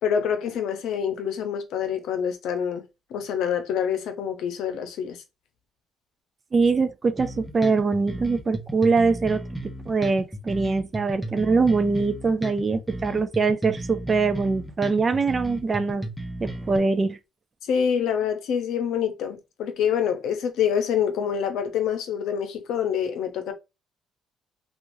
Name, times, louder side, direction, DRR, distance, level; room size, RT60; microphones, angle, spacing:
voice 1, 0.0-2.8 3.1-5.2 17.7-23.5, left 8 dB, 75° left, 0.7 m, -26 dB
voice 2, 6.5-9.4 9.9-16.1 16.4-17.2, right 4 dB, 30° right, 0.3 m, -23 dB
sound 1, 7.2-16.8, right 1 dB, 5° left, 0.7 m, -35 dB
3.0 x 2.4 x 2.6 m
cardioid pair, 110°, 0 cm